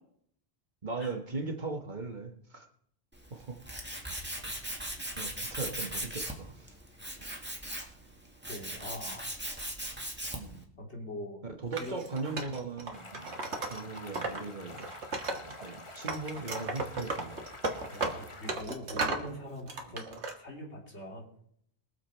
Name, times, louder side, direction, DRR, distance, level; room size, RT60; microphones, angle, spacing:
voice 1, 0.8-2.7 3.3-3.6 5.1-6.7 10.3-10.7 11.6-13.3 13.6-14.8 15.4-17.4, right 3 dB, 45° right, 4 dB, 1.5 m, -38 dB
Tools, 3.1-10.6, right 1 dB, 10° right, 1.8 m, -39 dB
voice 2, 8.5-9.3 10.8-11.4 11.8-12.1 17.9-20.1 20.4-21.3, left 1 dB, 85° left, -1 dB, 3.3 m, -42 dB
Wood, 11.7-14.4 14.7-15.7 16.1-19.3 19.7-20.3, right 3 dB, 90° right, 1.9 m, -35 dB
sound 1, 12.9-18.6, left 2 dB, 30° left, 1.1 m, -48 dB
22.0 x 7.3 x 4.4 m, 0.69 s
omnidirectional pair, 1.1 m